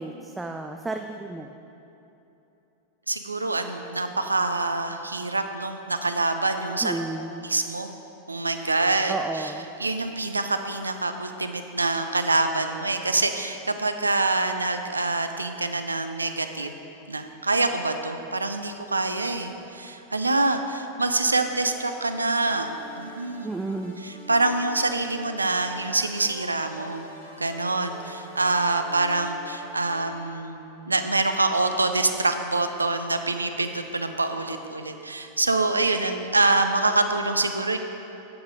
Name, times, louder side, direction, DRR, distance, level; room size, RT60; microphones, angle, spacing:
voice 1, 0.0-1.5 6.8-7.5 9.1-9.7 23.4-24.0, right 2 dB, 10° right, 4 dB, 0.3 m, -32 dB
voice 2, 3.1-6.9 7.4-8.0 8.3-9.1 9.8-16.7 17.1-23.5 24.0-27.1 27.4-37.8, right 2 dB, 80° right, 7 dB, 0.5 m, -25 dB
sound 1, 21.3-30.2, right 1 dB, 80° left, 1.5 m, -46 dB
9.8 x 7.2 x 3.8 m, 3.0 s
figure-of-eight pair, 90°, 0 cm